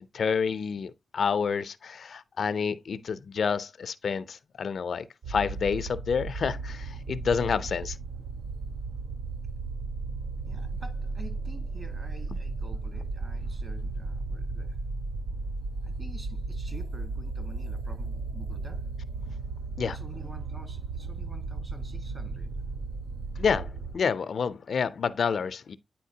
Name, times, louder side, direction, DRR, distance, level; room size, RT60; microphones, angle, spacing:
voice 1, 0.1-8.0 19.8-20.0 23.4-25.8, left 6 dB, 75° left, 0.4 m, -29 dB
sound 1, 5.2-23.9, right 3 dB, 90° right, 0.4 m, -35 dB
voice 2, 7.4-7.7 10.4-14.8 15.8-18.9 19.8-22.6, right 1 dB, 35° right, 1.5 m, -48 dB
9.2 x 4.3 x 2.7 m
wide cardioid pair, 90°, 0 cm